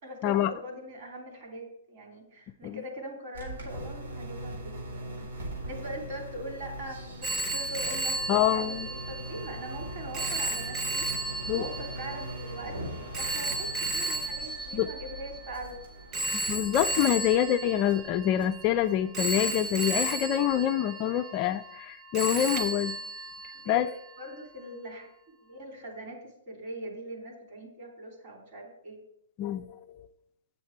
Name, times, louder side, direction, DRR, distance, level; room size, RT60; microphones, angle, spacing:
voice 1, 0.0-12.9 13.2-15.8 23.5-29.0, right 1 dB, 45° right, 1 dB, 3.1 m, -42 dB
sound 1, 3.3-20.6, right 1 dB, 85° right, 4.1 m, -42 dB
Telephone, 7.2-15.6 16.1-18.7 19.1-21.8 22.1-23.9, right 2 dB, 25° right, 0.8 m, -34 dB
voice 2, 8.3-8.9 11.5-11.7 14.7-14.9 16.3-23.0 23.7-23.9 29.4-30.1, left 11 dB, 35° left, 8 dB, 0.4 m, -26 dB
8.4 x 7.3 x 4.5 m, 0.72 s
hypercardioid pair, 150°, 0 cm